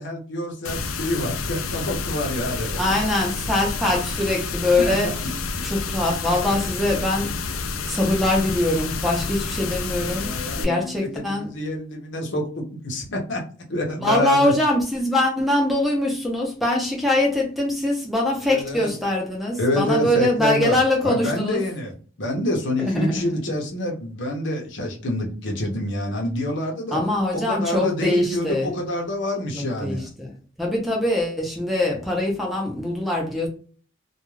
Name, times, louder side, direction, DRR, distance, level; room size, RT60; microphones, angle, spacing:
voice 1, 0.0-2.7 4.8-5.2 10.0-13.4 13.7-14.5 18.4-18.9 19.6-27.0 27.3-30.1, left 1 dB, 60° left, 0.8 m, -27 dB
sound 1, 0.6-10.6, left 4 dB, 80° left, 0.4 m, -29 dB
voice 2, 2.8-5.1 5.6-7.4 7.8-11.5 14.0-21.6 22.8-23.3 26.9-28.7 29.5-30.3 30.6-33.5, left 1 dB, ahead, 0.7 m, -23 dB
2.3 x 2.3 x 3.1 m
head